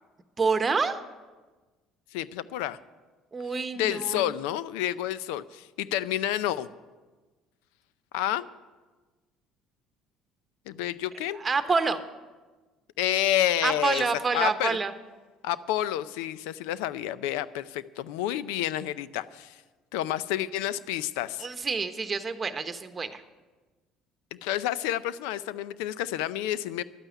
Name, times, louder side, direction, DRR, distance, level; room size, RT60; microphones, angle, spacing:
voice 1, 0.4-1.0 3.3-4.3 11.4-12.0 13.6-14.9 21.4-23.2, right 4 dB, 25° right, 9 dB, 1.1 m, -27 dB
voice 2, 2.1-2.8 3.7-6.7 8.1-8.5 10.7-11.4 13.0-14.1 14.3-14.8 15.4-19.6 19.9-21.5 24.4-26.8, left 12 dB, 85° left, 17 dB, 0.5 m, -29 dB
12.0 x 9.0 x 9.2 m, 1.3 s
supercardioid pair, 90°, 0 cm